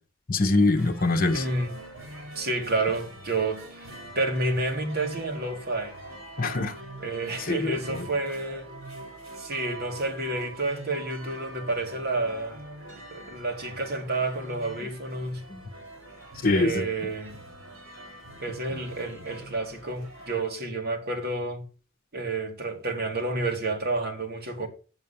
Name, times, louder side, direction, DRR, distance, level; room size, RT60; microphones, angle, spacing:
voice 1, 0.3-1.4 6.4-6.7 7.5-8.1 15.5-15.6 16.4-16.9, left 2 dB, 45° left, 1.0 m, -24 dB
sound 1, 0.8-20.3, right 1 dB, 70° right, 4.0 m, -44 dB
voice 2, 1.3-1.8 2.4-3.6 4.1-6.0 7.0-8.7 9.4-12.6 12.9-15.4 16.5-17.4 18.4-21.6 22.1-24.7, right 2 dB, 50° right, 2.4 m, -30 dB
8.0 x 7.3 x 7.2 m
head